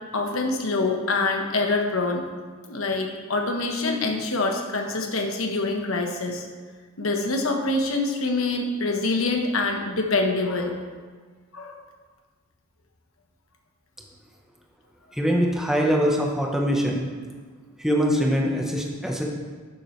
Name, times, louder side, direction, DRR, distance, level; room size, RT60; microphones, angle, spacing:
voice 1, 0.1-2.3 2.7-6.5 7.0-10.8 11.5-11.8, left 3 dB, 75° left, 3 dB, 1.2 m, -25 dB
voice 2, 15.2-17.1 17.8-19.2, equal, ahead, -1 dB, 1.0 m, -23 dB
11.5 x 7.3 x 3.3 m, 1.5 s
head